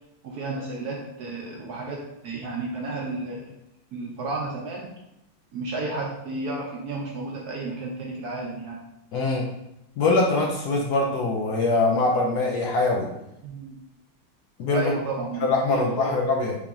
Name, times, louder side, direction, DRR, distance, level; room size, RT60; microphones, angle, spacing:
voice 1, 0.2-3.5 3.9-4.9 5.5-8.8 13.4-13.8 14.7-16.2, right 2 dB, 65° right, -1 dB, 1.0 m, -32 dB
voice 2, 9.1-9.4 10.0-13.1 14.6-14.9 15.4-16.5, left 3 dB, 70° left, -1 dB, 1.0 m, -23 dB
5.0 x 2.7 x 3.5 m, 0.85 s
omnidirectional pair, 2.1 m